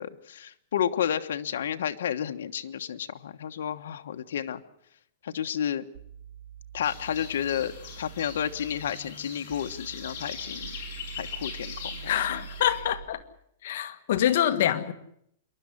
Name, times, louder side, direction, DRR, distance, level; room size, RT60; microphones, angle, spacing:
voice 1, 0.0-4.6 5.2-5.8 6.7-7.7 8.0-10.7 11.2-12.4, left 9 dB, 80° left, 6 dB, 1.3 m, -31 dB
sound 1, 5.9-13.0, right 9 dB, 70° right, 7.0 m, -45 dB
sound 2, 6.8-12.8, left 6 dB, 45° left, 7.6 m, -41 dB
voice 2, 12.1-13.2 13.6-14.9, left 11 dB, 60° left, 9 dB, 1.7 m, -25 dB
27.0 x 12.0 x 9.9 m, 0.72 s
supercardioid pair, 160°, 0 cm